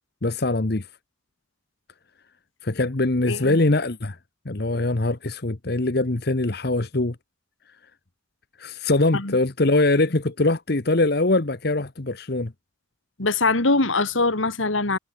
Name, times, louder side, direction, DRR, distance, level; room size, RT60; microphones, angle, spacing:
voice 1, 0.2-0.9 2.6-4.2 4.4-7.1 8.6-12.5, left 2 dB, 50° left, 1.1 m, -22 dB
voice 2, 3.3-3.6 9.1-9.4 13.2-15.0, left 3 dB, 80° left, 2.5 m, -22 dB
head